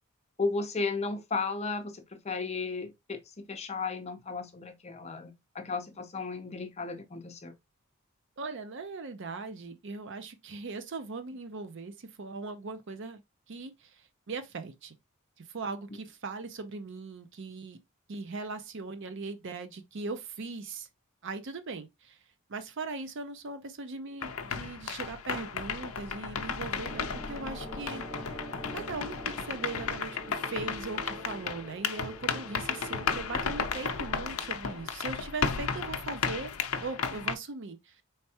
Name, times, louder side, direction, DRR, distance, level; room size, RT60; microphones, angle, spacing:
voice 1, 0.4-7.5, left 4 dB, 30° left, 0.6 m, -34 dB
voice 2, 8.4-13.2 13.5-14.9 15.4-17.8 18.1-20.9 21.2-22.2 22.5-28.4 28.7-36.5 36.8-38.0, right 3 dB, 55° right, 0.6 m, -39 dB
sound 1, 24.2-37.3, left 6 dB, 70° left, 0.5 m, -34 dB
sound 2, 26.9-34.5, equal, ahead, 2.1 m, -45 dB
4.4 x 3.3 x 2.8 m
head